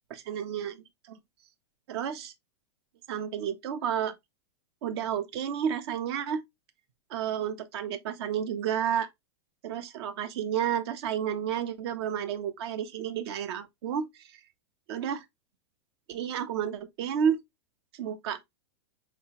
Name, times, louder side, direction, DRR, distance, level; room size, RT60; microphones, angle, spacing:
voice 1, 0.1-1.2 1.9-2.3 3.1-4.1 4.8-6.4 7.1-9.1 9.6-14.3 14.9-15.2 16.1-17.4 18.0-18.4, right 8 dB, 60° right, 0.8 m, -31 dB
4.7 x 3.2 x 2.9 m
hypercardioid pair, 110°, 15 cm